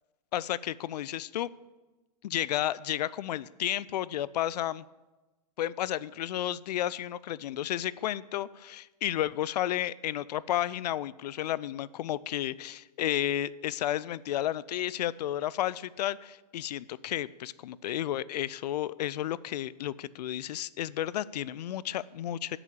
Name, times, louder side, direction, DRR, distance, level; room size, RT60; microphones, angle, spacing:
voice 1, 0.3-1.5 2.2-4.8 5.6-22.6, left 12 dB, 75° left, 20 dB, 0.5 m, -32 dB
8.5 x 6.9 x 8.5 m, 1.1 s
hypercardioid pair, 125°, 21 cm